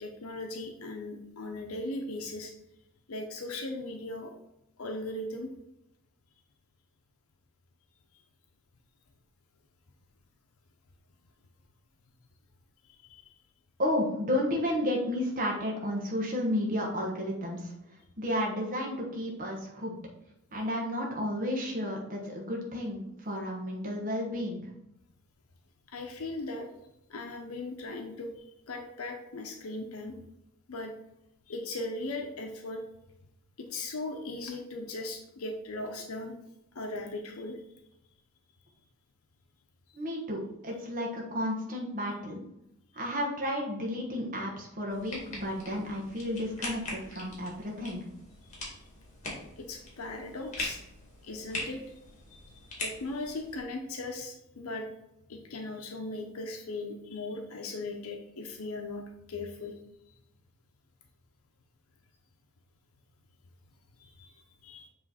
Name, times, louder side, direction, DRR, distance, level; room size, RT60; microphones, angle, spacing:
voice 1, 0.0-2.5 3.1-4.3 4.8-5.5 12.9-13.3 25.9-26.7 27.1-30.1 30.7-30.9 31.5-32.8 33.6-36.4 36.7-37.6 48.7-48.8 49.6-50.8 51.2-51.8 52.3-54.9 55.3-59.0 59.3-59.8 60.1-60.2 64.0-64.9, left 2 dB, 80° left, 3 dB, 0.7 m, -38 dB
voice 2, 13.8-17.7 18.2-20.0 20.5-24.6 39.9-42.4 42.9-48.0, left 1 dB, 40° right, -2 dB, 1.2 m, -32 dB
sound 1, 44.9-53.6, left 1 dB, 35° left, 2.1 m, -42 dB
7.4 x 3.2 x 4.1 m, 0.85 s
head